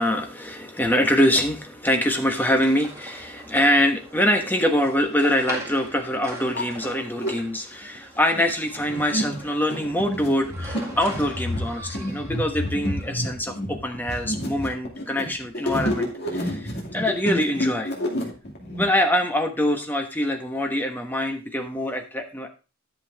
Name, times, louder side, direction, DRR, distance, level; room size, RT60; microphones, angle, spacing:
voice 1, 0.0-17.9 18.8-22.5, left 1 dB, 10° left, 4 dB, 1.2 m, -24 dB
sound 1, 2.0-13.2, right 2 dB, 15° right, 2.0 m, -41 dB
sound 2, 5.2-5.3 6.0-6.1 6.4-7.3 8.0-18.8, equal, 55° left, 2.4 m, -29 dB
10.5 x 7.1 x 3.5 m, 0.31 s
head